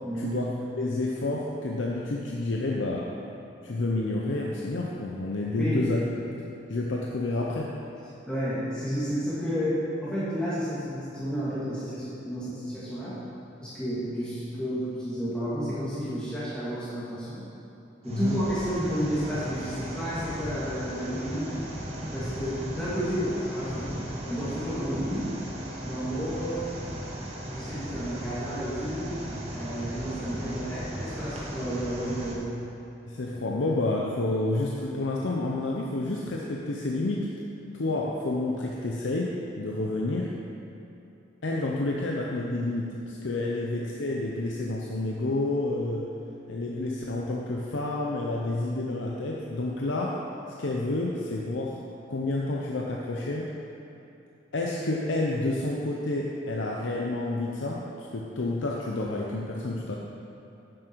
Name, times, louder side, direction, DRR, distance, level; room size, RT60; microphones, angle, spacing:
voice 1, 0.0-0.4 5.6-5.9 8.3-13.2 13.6-17.4 18.0-21.6 22.1-23.9 24.2-25.3 25.8-26.6 27.5-29.1 29.5-32.5, equal, 5° left, -11 dB, 2.0 m, -31 dB
voice 2, 0.8-3.1 3.6-6.0 6.4-7.7 18.1-18.4 33.1-37.3 37.7-40.3 41.4-46.1 46.5-50.3 50.6-51.8 52.1-53.5 54.5-60.0, left 2 dB, 85° left, -2 dB, 0.7 m, -29 dB
sound 1, 18.0-32.3, right 1 dB, 35° right, 1.3 m, -36 dB
10.0 x 7.5 x 4.6 m, 2.8 s
head